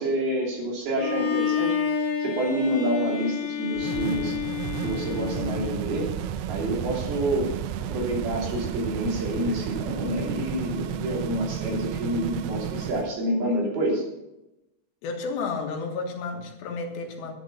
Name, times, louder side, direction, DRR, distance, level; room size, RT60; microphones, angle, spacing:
voice 1, 0.0-1.7 2.2-4.4 4.8-6.1 6.5-7.5 7.9-14.0, right 1 dB, 60° right, -2 dB, 4.8 m, -28 dB
Bowed string instrument, 0.9-6.0, left 8 dB, 50° left, 1.1 m, -29 dB
sound 1, 3.8-13.1, right 9 dB, 80° right, 2.7 m, -32 dB
voice 2, 15.0-17.3, left 4 dB, 75° left, 3 dB, 3.6 m, -31 dB
11.5 x 10.5 x 5.6 m, 0.92 s
omnidirectional pair, 5.0 m